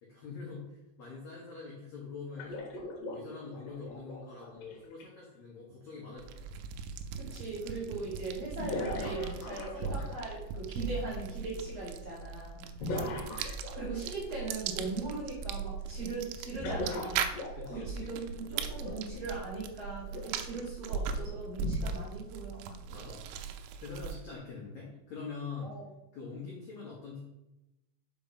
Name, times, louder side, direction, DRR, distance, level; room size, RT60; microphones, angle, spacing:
voice 1, 0.0-2.6 3.0-6.6 12.8-13.1 17.5-17.9 22.9-25.7 26.1-27.2, left 4 dB, 85° left, -4 dB, 1.6 m, -44 dB
sound 1, 2.4-5.0 7.0-7.1 8.6-10.3 12.8-14.1 16.5-18.1 18.8-19.0 20.1-20.4 21.6-21.7, left 1 dB, 65° left, 2.3 m, -39 dB
sound 2, 6.2-24.4, right 6 dB, 85° right, 2.7 m, -39 dB
voice 2, 7.2-12.7 13.7-17.3 17.7-22.8 25.6-25.8, right 3 dB, 50° right, -6 dB, 2.1 m, -39 dB
5.7 x 5.2 x 5.7 m, 0.93 s
omnidirectional pair, 5.5 m